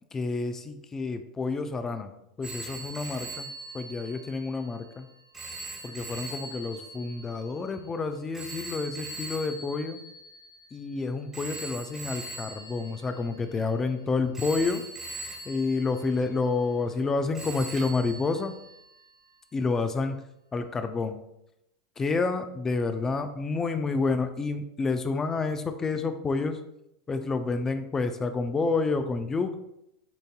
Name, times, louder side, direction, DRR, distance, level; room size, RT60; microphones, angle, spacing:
voice 1, 0.1-2.1 2.4-5.1 5.8-10.0 10.7-14.8 15.4-18.5 19.5-20.2 20.5-21.2 22.0-26.6 27.1-29.6, left 4 dB, 20° left, 9 dB, 0.4 m, -29 dB
Telephone, 2.4-10.8 11.3-13.9 14.3-17.1 17.3-19.1, right 2 dB, 15° right, 1.5 m, -42 dB
7.0 x 2.7 x 2.3 m, 0.81 s
hypercardioid pair, 90°, 2 cm